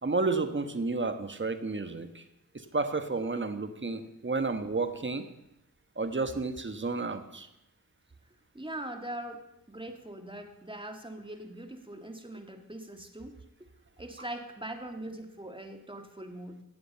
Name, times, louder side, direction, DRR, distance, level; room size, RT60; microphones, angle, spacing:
voice 1, 0.0-2.2 2.5-5.2 6.0-7.5, right 3 dB, 30° right, 9 dB, 1.4 m, -31 dB
voice 2, 8.5-13.7 14.0-16.6, right 1 dB, 15° right, 4 dB, 2.1 m, -42 dB
17.0 x 7.8 x 5.6 m, 0.88 s
cardioid pair, 45°, 37 cm